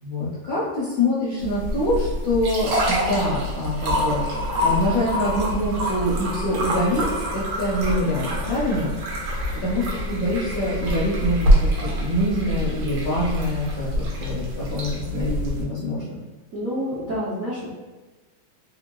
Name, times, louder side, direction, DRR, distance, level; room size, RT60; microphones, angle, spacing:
voice 1, 0.0-4.2 4.6-7.0 7.3-9.0 9.6-16.1, left 1 dB, 65° left, -8 dB, 0.9 m, -25 dB
sound 1, 1.4-15.6, equal, 90° right, 1.6 m, -25 dB
voice 2, 16.5-17.7, equal, 65° right, -10 dB, 0.8 m, -28 dB
3.7 x 3.1 x 2.2 m, 1.2 s
omnidirectional pair, 2.2 m